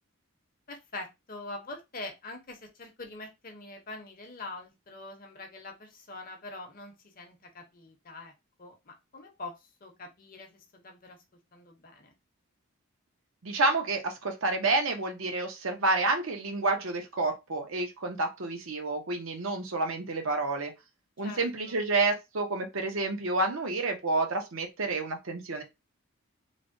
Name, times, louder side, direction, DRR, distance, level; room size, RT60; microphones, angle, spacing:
voice 1, 0.7-8.3 8.6-9.5 9.8-11.2 11.5-12.1 21.2-21.8, left 2 dB, 40° left, 4 dB, 0.7 m, -44 dB
voice 2, 13.4-20.7 21.2-25.6, right 3 dB, 70° right, 4 dB, 0.7 m, -29 dB
3.2 x 2.1 x 2.6 m, 0.23 s
head